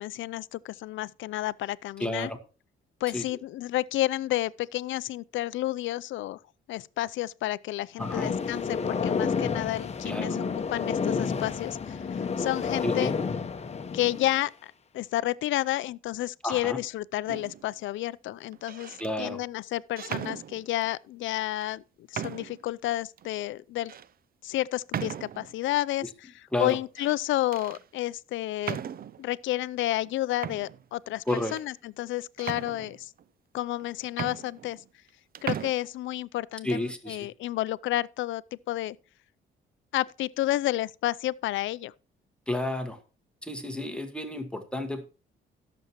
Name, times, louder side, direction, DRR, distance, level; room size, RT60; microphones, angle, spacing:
voice 1, 0.0-2.3 3.0-6.4 6.7-10.4 10.7-13.1 13.9-23.9 24.4-26.3 26.6-28.8 29.2-31.2 31.5-33.1 33.5-34.8 35.4-39.0 39.9-41.9, left 15 dB, 75° left, 0.5 m, -31 dB
voice 2, 2.0-2.4 3.1-3.2 8.0-8.3 10.0-10.3 12.8-13.1 16.4-16.8 19.0-19.4 26.0-26.1 26.5-26.8 31.3-31.5 36.6-37.3 42.5-43.0 43.4-45.0, left 1 dB, 5° left, 1.5 m, -31 dB
sound 1, 8.0-14.4, left 5 dB, 35° left, 1.0 m, -30 dB
sound 2, 17.3-17.7 18.5-19.1 20.0-20.9 21.6-21.7 22.1-22.7 23.2-23.3 23.9-24.1 24.9-25.6 26.7-27.2 27.5-27.8 28.6-29.3 30.0-30.1 30.4-31.7 32.4-33.2 33.8-33.9 34.1-35.1 35.3-35.7, right 9 dB, 50° right, 0.5 m, -37 dB
17.5 x 7.1 x 3.0 m
cardioid pair, 90°, 20 cm